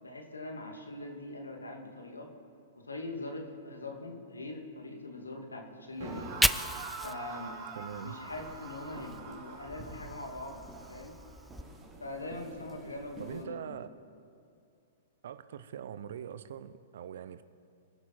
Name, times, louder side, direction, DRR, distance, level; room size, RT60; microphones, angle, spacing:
voice 1, 0.0-2.3 2.8-6.3 7.0-7.6 8.0-10.6 10.9-11.2 12.0-13.8, left 2 dB, 85° left, 2 dB, 2.5 m, -42 dB
Fire, 6.0-9.2 9.6-11.6, left 1 dB, 5° left, 0.4 m, -36 dB
sound 1, 6.0-13.1, right 4 dB, 50° right, 3.4 m, -45 dB
voice 2, 7.7-8.2 13.2-13.9 15.2-17.4, right 9 dB, 65° right, 14 dB, 0.8 m, -42 dB
sound 2, 8.2-13.4, right 1 dB, 20° right, 3.0 m, -52 dB
26.0 x 11.5 x 4.4 m, 2.5 s
figure-of-eight pair, 110°, 0 cm